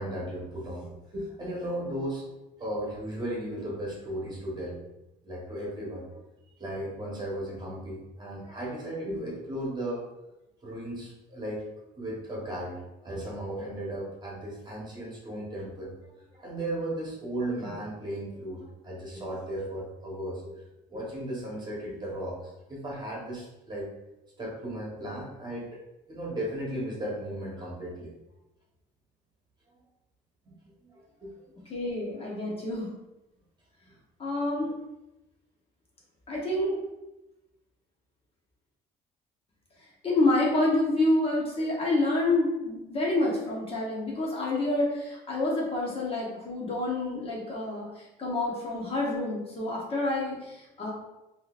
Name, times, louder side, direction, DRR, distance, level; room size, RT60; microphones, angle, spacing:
voice 1, 0.0-2.2 2.6-4.8 5.2-6.1 6.6-10.1 10.6-11.6 12.0-15.9 16.3-20.6 20.9-23.9 24.4-25.8 26.1-28.1 30.4-30.5 30.8-31.3 33.9-34.0, right 1 dB, 25° right, -4 dB, 1.2 m, -36 dB
voice 2, 31.7-32.9 34.2-34.7 36.3-36.8 40.0-50.9, left 2 dB, 35° left, -3 dB, 0.9 m, -28 dB
3.7 x 2.8 x 2.5 m, 0.96 s
cardioid pair, 110°, 17 cm